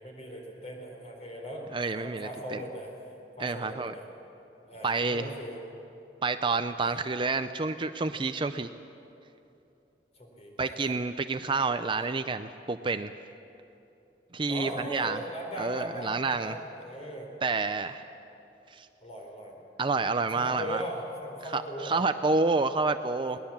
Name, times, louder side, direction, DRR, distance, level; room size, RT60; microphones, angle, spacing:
voice 1, 0.0-2.9 3.4-4.1 4.6-5.6 6.8-6.9 10.1-11.0 14.5-17.3 19.0-19.6 20.3-22.0, equal, 35° left, 1 dB, 4.2 m, -39 dB
voice 2, 1.7-2.6 3.4-3.9 4.8-5.3 6.2-8.7 10.6-13.1 14.3-15.2 15.6-16.5 17.4-18.1 18.7-18.9 19.8-20.8 21.5-23.4, right 3 dB, 30° right, 10 dB, 0.5 m, -29 dB
22.0 x 19.0 x 7.3 m, 2.8 s
head